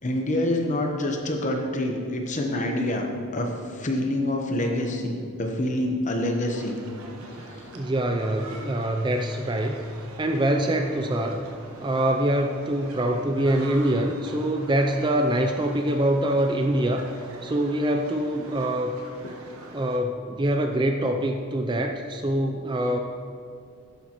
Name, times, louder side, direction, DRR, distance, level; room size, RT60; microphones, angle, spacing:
voice 1, 0.0-3.1 3.3-6.8 7.5-7.7, left 1 dB, 35° left, 2 dB, 1.0 m, -26 dB
sound 1, 6.5-20.0, right 2 dB, 75° right, 1.0 m, -44 dB
voice 2, 7.7-9.8 10.2-11.4 11.8-17.1 17.4-19.0 19.7-23.0, right 1 dB, 20° right, 4 dB, 0.4 m, -24 dB
11.0 x 9.8 x 3.0 m, 2.4 s
head